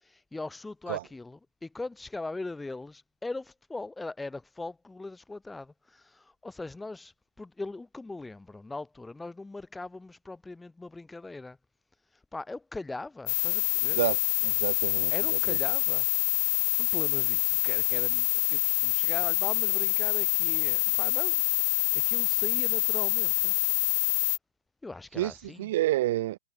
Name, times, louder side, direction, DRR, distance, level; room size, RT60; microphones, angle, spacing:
voice 1, 0.0-11.6 12.3-14.0 15.1-16.1 16.8-23.5 24.8-25.7, left 2 dB, 5° left, 4.6 m, -40 dB
sound 1, 13.3-24.4, left 21 dB, 50° left, 0.7 m, -26 dB
voice 2, 14.4-15.6 25.2-25.3 25.6-26.4, right 15 dB, 55° right, 2.0 m, -29 dB
hypercardioid pair, 130°, 0 cm